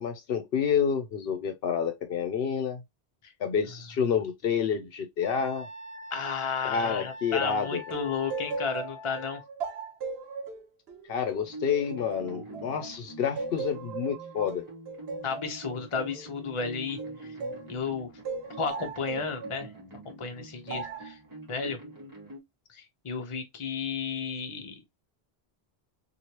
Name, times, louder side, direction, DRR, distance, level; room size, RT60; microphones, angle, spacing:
voice 1, 0.0-2.8 3.4-5.7 6.6-7.8 11.1-14.6, left 7 dB, 70° left, 0.8 m, -29 dB
Wind instrument woodwind instrument, 5.2-9.4, left 2 dB, 5° left, 0.9 m, -44 dB
voice 2, 6.1-9.4 15.2-17.4 17.7-18.1 18.6-19.7 20.2-21.2 21.5-21.8 22.7-24.8, left 5 dB, 35° left, 0.7 m, -33 dB
sound 1, 7.9-12.9 13.4-17.7 18.2-19.7 20.7-21.1, right 4 dB, 85° right, 0.9 m, -38 dB
sound 2, 11.4-22.4, right 2 dB, 20° right, 1.2 m, -45 dB
3.1 x 2.6 x 2.8 m
omnidirectional pair, 1.1 m